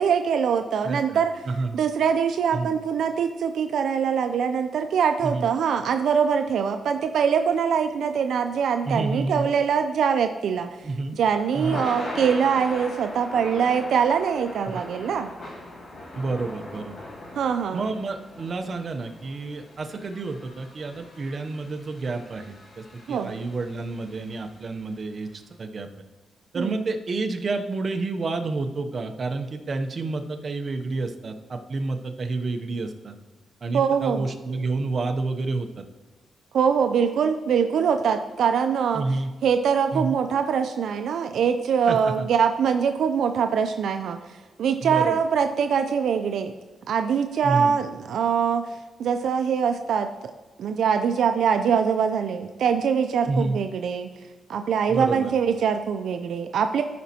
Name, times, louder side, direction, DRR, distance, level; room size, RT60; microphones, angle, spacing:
voice 1, 0.0-1.4 1.7-15.3 17.4-17.9 23.1-23.3 26.5-26.8 33.7-34.2 36.5-39.0 39.4-46.5 46.9-50.3 50.6-54.1 54.5-56.8, right 7 dB, 80° right, 7 dB, 0.4 m, -23 dB
voice 2, 0.8-1.2 1.5-1.8 2.5-2.7 5.2-5.5 8.8-9.5 10.8-11.2 11.5-11.8 14.7-14.8 16.1-17.0 17.7-25.9 26.5-33.1 33.6-35.8 38.9-39.3 39.9-40.2 41.9-42.3 44.8-45.2 47.4-47.7 53.2-53.6 54.9-55.3, right 3 dB, 45° right, 5 dB, 0.7 m, -29 dB
Thunder / Rain, 10.6-24.8, left 1 dB, 60° left, 2.3 m, -40 dB
13.5 x 5.1 x 2.9 m, 1.2 s
cardioid pair, 120°, 0 cm